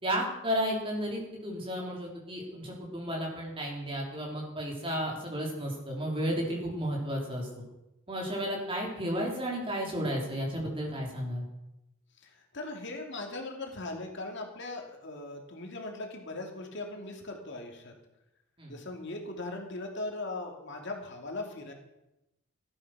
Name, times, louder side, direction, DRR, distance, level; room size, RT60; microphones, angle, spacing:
voice 1, 0.0-7.5 8.1-11.5 18.6-18.8, equal, 25° right, -1 dB, 3.9 m, -33 dB
voice 2, 12.2-17.9 18.7-21.7, left 2 dB, 60° left, 2 dB, 2.6 m, -39 dB
16.0 x 11.5 x 6.2 m, 0.92 s
head